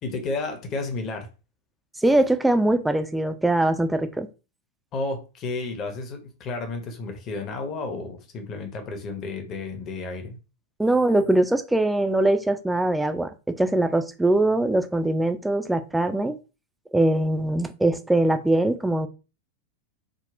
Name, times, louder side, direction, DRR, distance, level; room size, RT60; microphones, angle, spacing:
voice 1, 0.0-1.3 4.9-10.4, left 3 dB, 35° left, 5 dB, 0.7 m, -32 dB
voice 2, 2.0-4.3 10.8-16.4 16.9-19.1, right 1 dB, 5° right, 9 dB, 0.3 m, -22 dB
3.7 x 2.1 x 2.5 m, 0.32 s
figure-of-eight pair, 90°, 0 cm